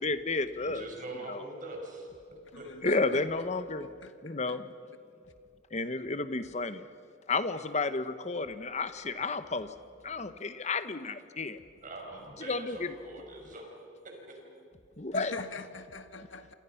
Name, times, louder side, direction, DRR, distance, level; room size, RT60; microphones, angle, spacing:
voice 1, 0.0-0.9 1.3-1.4 2.8-3.9 4.2-4.7 5.7-6.8 7.3-9.7 10.0-11.6 12.4-13.0 15.0-15.3, left 3 dB, 35° left, 11 dB, 1.1 m, -32 dB
voice 2, 0.6-2.1 2.6-2.8 11.8-13.7 14.0-14.4, right 2 dB, 45° right, 1 dB, 5.6 m, -43 dB
voice 3, 2.5-3.2 3.7-4.6 15.1-16.5, left 3 dB, 80° left, 9 dB, 1.5 m, -44 dB
29.0 x 26.0 x 5.9 m, 2.3 s
head